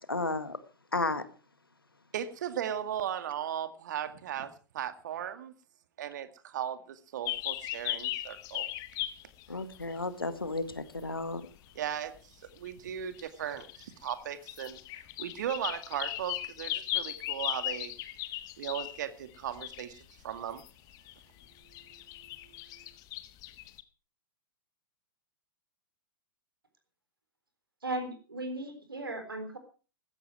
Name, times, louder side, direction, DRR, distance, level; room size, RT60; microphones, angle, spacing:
voice 1, 0.1-0.6 0.9-1.2 9.5-11.4, left 3 dB, 80° left, 1.8 m, -33 dB
voice 2, 2.1-5.5 6.0-8.7 11.8-17.9 18.6-20.6 21.9-22.0 22.5-22.9, right 10 dB, 55° right, 2.0 m, -37 dB
sound 1, 7.3-10.0 10.7-11.1 12.6-12.7 13.0-19.0 19.4-21.1 21.4-23.8, left 15 dB, 30° left, 1.3 m, -37 dB
voice 3, 27.8-29.6, right 2 dB, 75° right, 3.8 m, -36 dB
15.5 x 13.5 x 4.7 m
figure-of-eight pair, 105°, 12 cm